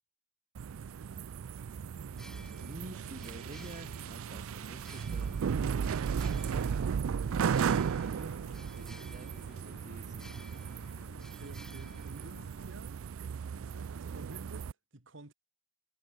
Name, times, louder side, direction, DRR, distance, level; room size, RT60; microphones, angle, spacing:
sound 1, 0.6-14.7, right 7 dB, 90° right, 0.4 m, -35 dB
sound 2, 2.1-12.7, left 2 dB, 55° left, 3.9 m, -57 dB
sound 3, 2.1-12.9, left 1 dB, 5° left, 1.4 m, -58 dB
voice 1, 2.6-6.0 6.7-10.5, right 1 dB, 40° right, 1.5 m, -51 dB
voice 2, 11.1-13.0 13.5-15.3, right 2 dB, 65° right, 2.0 m, -52 dB
head